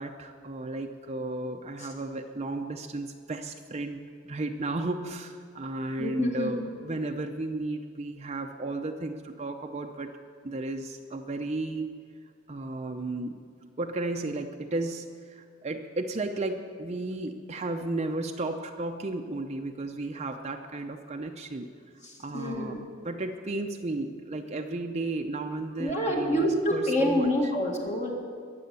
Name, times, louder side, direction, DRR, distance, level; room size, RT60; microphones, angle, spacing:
voice 1, 0.0-10.1 10.4-11.9 12.5-13.4 13.8-21.7 22.2-22.8 23.0-27.3, right 2 dB, 35° right, 4 dB, 0.6 m, -34 dB
voice 2, 6.0-6.7 22.0-22.8 25.8-28.1, left 1 dB, 40° left, -1 dB, 1.8 m, -27 dB
22.0 x 7.7 x 6.9 m, 2.1 s
head